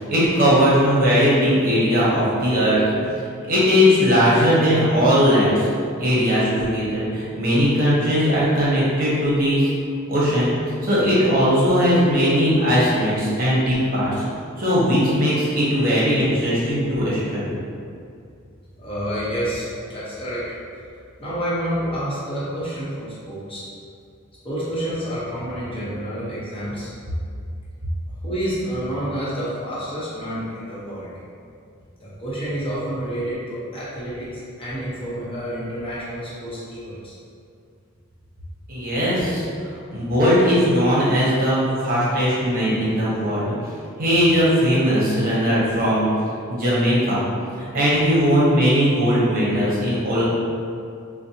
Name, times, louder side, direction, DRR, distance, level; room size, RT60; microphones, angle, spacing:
voice 1, 0.0-3.1 3.4-5.7 6.0-9.7 10.1-14.1 14.6-17.6 38.7-43.7 44.0-46.1 46.5-47.2 47.5-50.2, equal, 45° right, -8 dB, 0.9 m, -19 dB
voice 2, 18.8-20.4 21.2-23.6 24.4-26.9 28.2-31.1 32.0-34.3 34.6-37.1, equal, 25° left, -10 dB, 1.0 m, -29 dB
4.1 x 2.2 x 2.8 m, 2.4 s
head